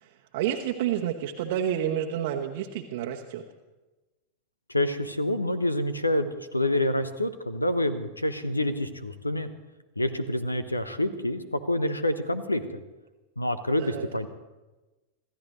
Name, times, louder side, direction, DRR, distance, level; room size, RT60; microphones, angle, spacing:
voice 1, 0.3-3.4 13.8-14.0, right 10 dB, 50° right, 0 dB, 1.1 m, -29 dB
voice 2, 4.7-9.5 10.0-12.8 13.4-14.3, left 1 dB, 85° left, 13 dB, 1.0 m, -27 dB
27.0 x 14.5 x 3.2 m, 1.1 s
figure-of-eight pair, 90°, 0 cm